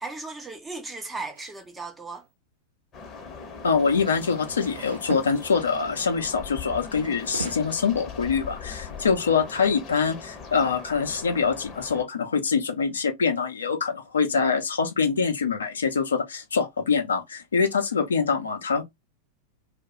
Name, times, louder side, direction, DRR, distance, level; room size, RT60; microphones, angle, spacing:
voice 1, 0.0-2.2, right 3 dB, 10° right, 0.6 m, -36 dB
sound 1, 1.3-1.6 4.0-5.8 7.0-7.5, right 5 dB, 70° right, 0.8 m, -38 dB
sound 2, 2.9-12.0, left 5 dB, 30° left, 0.8 m, -40 dB
voice 2, 3.6-18.8, left 5 dB, 70° left, 0.5 m, -24 dB
2.2 x 2.1 x 2.7 m
figure-of-eight pair, 90°, 0 cm